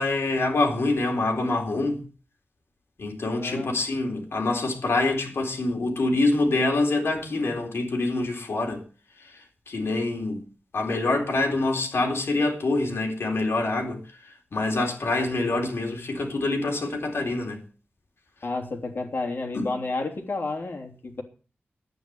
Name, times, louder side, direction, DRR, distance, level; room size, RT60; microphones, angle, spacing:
voice 1, 0.0-2.0 3.0-8.8 9.2-10.4 10.7-17.6 19.6-19.7, left 2 dB, 75° left, 3.9 m, -26 dB
voice 2, 3.3-3.7 18.4-21.2, left 3 dB, 55° left, 3.2 m, -31 dB
12.0 x 9.6 x 7.9 m
wide cardioid pair, 110°, 4 cm